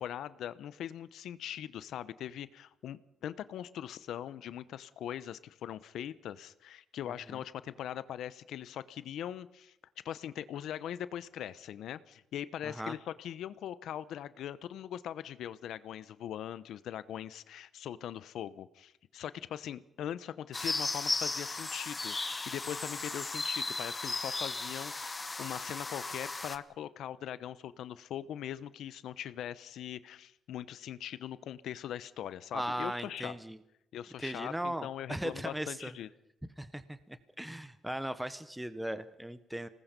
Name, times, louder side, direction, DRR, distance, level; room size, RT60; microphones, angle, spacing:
voice 1, 0.0-9.7 10.0-33.4 33.9-36.1, left 10 dB, 75° left, 15 dB, 0.9 m, -41 dB
voice 2, 12.6-13.0 32.5-33.6 34.2-35.9 36.6-39.7, right 1 dB, 5° right, 12 dB, 1.1 m, -38 dB
sound 1, 20.5-26.6, left 3 dB, 25° left, 1.1 m, -36 dB
26.0 x 19.5 x 5.3 m, 0.83 s
cardioid pair, 90°, 0 cm